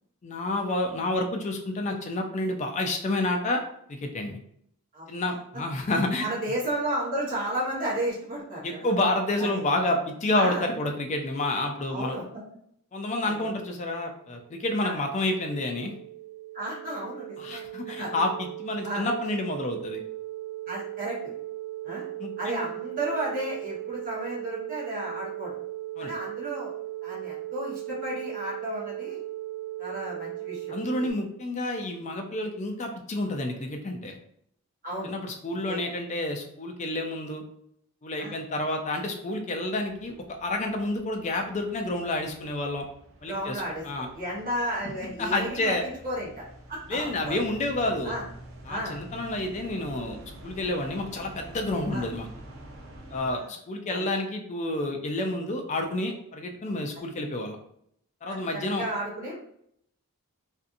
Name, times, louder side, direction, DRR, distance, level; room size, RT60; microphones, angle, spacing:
voice 1, 0.2-3.6 3.9-4.4 5.1-6.3 8.6-12.2 12.9-15.9 17.4-20.0 22.2-22.7 26.0-26.1 30.7-34.1 35.0-37.4 38.0-40.1 40.4-42.9 43.2-44.1 45.0-45.8 46.9-48.1 48.7-52.3 53.1-57.6 58.2-58.8, left 2 dB, 30° left, 4 dB, 0.3 m, -29 dB
voice 2, 4.9-5.4 6.2-8.9 9.4-9.6 10.3-10.6 11.9-12.2 13.2-13.5 14.8-15.0 16.5-17.6 18.0-18.1 18.8-19.1 20.7-21.2 21.8-22.1 22.4-25.6 26.0-26.7 27.0-29.2 29.8-30.7 34.8-35.1 35.7-35.8 38.2-38.4 43.3-43.8 44.1-46.4 46.7-47.4 48.0-48.2 48.7-49.0 51.9-52.1 53.3-53.5 53.9-54.1 58.3-58.4 58.8-59.3, right 1 dB, 40° right, -6 dB, 1.0 m, -33 dB
sound 1, 14.1-31.1, right 16 dB, 85° right, 1.1 m, -38 dB
sound 2, 39.9-53.3, right 1 dB, 60° right, 0.5 m, -47 dB
2.6 x 2.5 x 2.5 m, 0.71 s
head